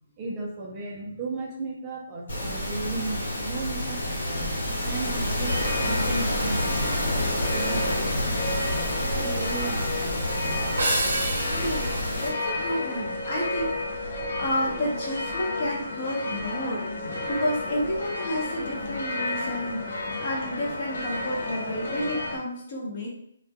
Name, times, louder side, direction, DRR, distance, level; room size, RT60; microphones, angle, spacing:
voice 1, 0.2-4.5 4.8-7.1 7.5-10.7, right 3 dB, 25° right, -2 dB, 0.4 m, -36 dB
sound 1, 2.3-12.3, left 1 dB, 80° left, 1.0 m, -28 dB
sound 2, 5.5-22.4, left 2 dB, 65° left, 0.6 m, -32 dB
sound 3, 10.8-13.4, right 2 dB, 65° right, 0.6 m, -30 dB
voice 2, 11.4-23.1, left 1 dB, 35° left, -4 dB, 0.8 m, -31 dB
2.2 x 2.1 x 2.8 m, 0.72 s
hypercardioid pair, 165°, 0 cm